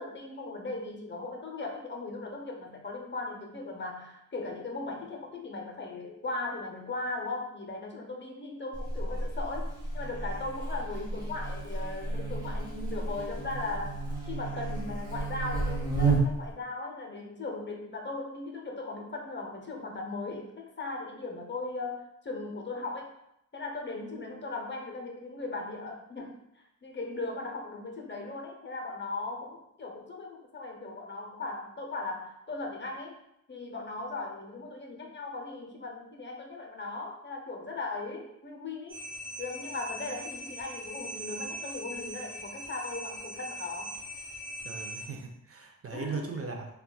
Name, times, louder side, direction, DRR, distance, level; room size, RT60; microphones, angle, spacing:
voice 1, 0.0-9.7 9.9-23.1 23.5-26.4 26.8-33.2 33.5-39.0 39.4-44.0 45.9-46.6, left 3 dB, 35° left, 1 dB, 0.6 m, -38 dB
Buzz, 8.7-16.5, right 3 dB, 10° right, 0.8 m, -32 dB
sound 1, 38.9-45.0, equal, 80° right, 0.8 m, -41 dB
voice 2, 44.6-46.7, right 5 dB, 45° right, 3 dB, 0.4 m, -38 dB
4.0 x 2.2 x 2.2 m, 0.78 s
wide cardioid pair, 80°, 33 cm